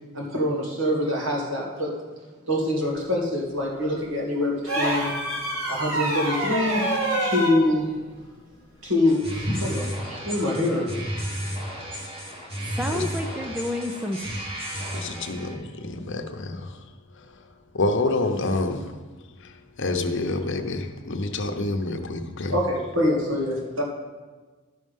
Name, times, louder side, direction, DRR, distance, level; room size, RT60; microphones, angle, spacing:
voice 1, 0.1-1.9 2.5-5.1 5.7-7.9 8.8-10.9 22.5-23.8, left 1 dB, 65° right, -2 dB, 2.4 m, -25 dB
sound 1, 4.6-7.6 9.3-9.4, right 1 dB, 85° right, 2.6 m, -26 dB
sound 2, 9.0-15.5, equal, 25° right, 1.8 m, -33 dB
voice 2, 12.6-14.2 15.4-15.5, left 1 dB, 5° right, 4 dB, 0.5 m, -30 dB
voice 3, 14.9-16.8 17.2-17.3 17.7-18.9 19.4-22.6, left 2 dB, 60° left, 5 dB, 0.9 m, -28 dB
12.0 x 6.3 x 5.5 m, 1.3 s
head